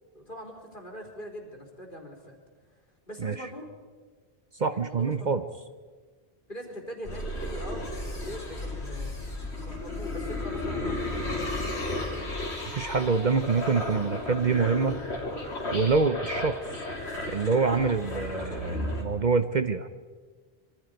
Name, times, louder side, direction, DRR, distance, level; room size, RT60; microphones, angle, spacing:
voice 1, 0.1-2.4 3.1-3.7 4.7-5.4 6.5-9.1 9.6-12.3, equal, 50° left, 1 dB, 4.1 m, -42 dB
voice 2, 4.5-5.4 12.7-15.0 15.7-16.6 17.3-20.0, right 4 dB, 50° right, 10 dB, 0.8 m, -26 dB
sound 1, 7.0-19.0, left 2 dB, 90° left, 3.7 m, -34 dB
26.0 x 23.5 x 5.2 m, 1.4 s
omnidirectional pair, 1.1 m